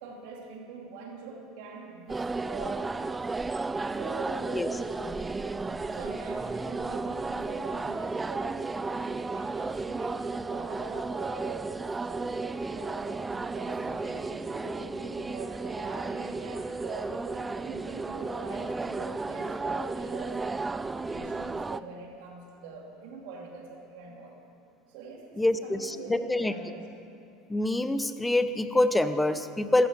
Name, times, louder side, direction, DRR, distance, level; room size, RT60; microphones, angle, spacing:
voice 1, 0.0-3.1 3.9-5.1 5.8-13.2 13.5-24.4 24.9-26.8, right 3 dB, 70° right, 0 dB, 2.6 m, -44 dB
sound 1, 2.1-21.8, right 3 dB, 15° right, 0.3 m, -33 dB
voice 2, 25.4-26.5 27.5-29.9, left 1 dB, 10° left, 11 dB, 0.8 m, -26 dB
14.0 x 13.5 x 4.9 m, 2.7 s
hypercardioid pair, 90°, 0 cm